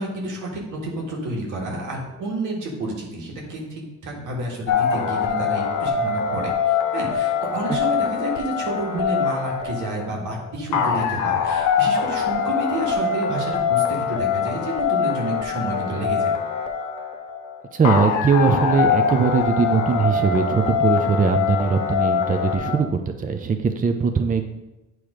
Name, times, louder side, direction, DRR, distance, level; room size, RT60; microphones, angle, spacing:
voice 1, 0.0-16.3, right 2 dB, 85° right, -1 dB, 1.7 m, -30 dB
sound 1, 4.7-22.8, left 7 dB, 85° left, 0.8 m, -23 dB
voice 2, 17.7-24.4, right 5 dB, 25° right, 6 dB, 0.6 m, -20 dB
8.7 x 3.1 x 4.9 m, 1.0 s
cardioid pair, 90°, 30 cm